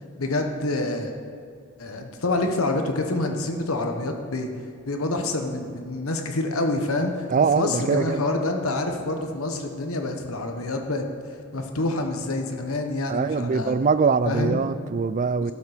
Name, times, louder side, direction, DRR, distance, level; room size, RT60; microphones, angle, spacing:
voice 1, 0.2-1.1 1.8-4.5 4.9-7.3 7.5-13.7 14.2-14.6 15.4-15.5, left 2 dB, 75° left, 1.2 m, -27 dB
voice 2, 7.3-8.2 13.1-15.5, right 5 dB, 40° right, 0.4 m, -23 dB
16.5 x 7.3 x 5.1 m
head